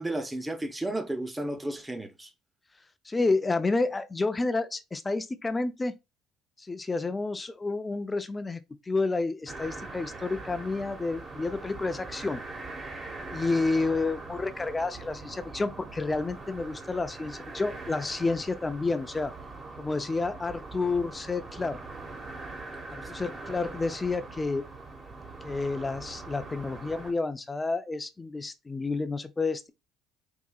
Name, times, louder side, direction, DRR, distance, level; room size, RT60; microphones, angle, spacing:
voice 1, 0.0-2.3, right 1 dB, 10° right, 0.8 m, -33 dB
voice 2, 3.1-5.9 6.7-8.6 8.9-12.4 13.3-19.3 19.8-21.8 22.9-24.7 25.4-29.7, left 3 dB, 20° left, 0.5 m, -30 dB
sound 1, 9.5-27.1, right 3 dB, 35° right, 1.3 m, -42 dB
4.8 x 2.8 x 2.3 m
hypercardioid pair, 70°, 0 cm